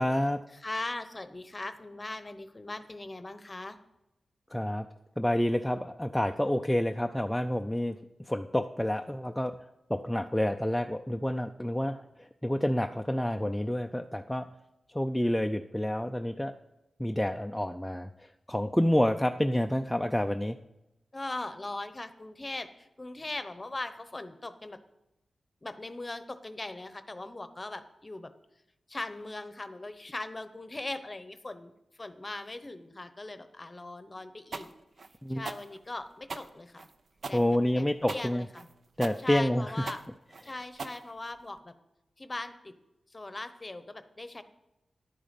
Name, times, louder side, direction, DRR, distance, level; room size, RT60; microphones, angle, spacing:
voice 1, 0.0-0.4 4.5-4.9 5.2-8.0 8.3-9.6 9.9-14.5 14.9-16.5 17.0-20.6 35.2-35.4 37.3-38.5 39.0-39.9, left 1 dB, 5° left, 4 dB, 0.4 m, -28 dB
voice 2, 0.5-3.8 21.1-24.8 25.6-28.3 28.9-31.7 32.0-34.7 35.3-36.9 37.3-37.4 37.7-38.7 39.2-40.0 40.4-41.7 42.2-42.7 43.1-44.4, left 2 dB, 25° left, 11 dB, 0.8 m, -40 dB
sound 1, 34.5-41.6, right 4 dB, 60° right, 0.7 m, -41 dB
11.0 x 9.0 x 5.2 m, 0.93 s
wide cardioid pair, 85°, 0 cm